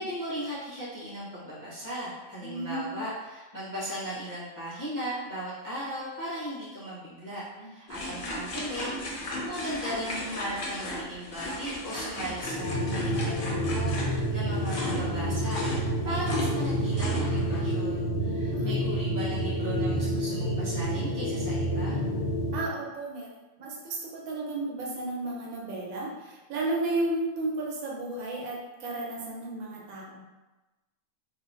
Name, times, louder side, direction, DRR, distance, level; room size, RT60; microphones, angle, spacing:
voice 1, 0.0-22.0, equal, 15° right, -10 dB, 0.9 m, -37 dB
voice 2, 2.4-3.0 7.6-7.7 8.0-8.3 18.5-18.8 22.5-23.3 23.6-30.2, right 2 dB, 80° right, -2 dB, 1.1 m, -33 dB
sound 1, 7.9-17.6, left 1 dB, 60° left, 0.5 m, -36 dB
sound 2, 12.4-22.7, right 1 dB, 85° left, 1.0 m, -29 dB
3.4 x 2.0 x 2.6 m, 1.1 s
omnidirectional pair, 1.5 m